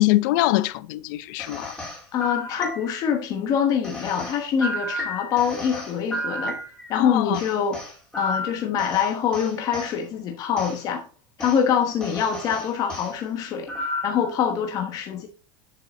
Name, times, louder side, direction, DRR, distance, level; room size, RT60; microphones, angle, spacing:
voice 1, 0.0-1.7 6.9-7.4, left 17 dB, 60° left, 0.5 m, -23 dB
sound 1, 1.4-3.2 3.8-7.0 7.3-9.9 10.6-10.8 11.4-11.6 12.0-13.1 13.7-14.3, left 1 dB, 10° left, 2.3 m, -32 dB
voice 2, 2.1-6.6 6.9-7.8 8.1-11.0 11.4-13.7 14.0-15.3, left 7 dB, 30° left, 1.1 m, -24 dB
7.8 x 7.5 x 3.9 m
supercardioid pair, 165°, 12 cm